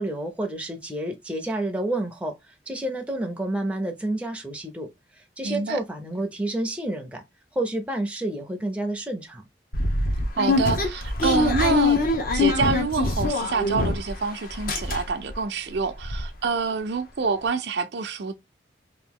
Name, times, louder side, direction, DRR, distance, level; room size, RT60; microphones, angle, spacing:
voice 1, 0.0-4.9 5.4-7.2 7.5-9.4, right 1 dB, 5° right, 0.6 m, -29 dB
voice 2, 5.4-5.8 10.4-12.0 12.3-18.3, right 4 dB, 65° right, 0.5 m, -27 dB
sound 1, 9.7-14.2 14.5-15.3 15.7-15.8 16.0-16.2, left 3 dB, 50° left, 0.8 m, -24 dB
3.0 x 2.6 x 3.5 m
head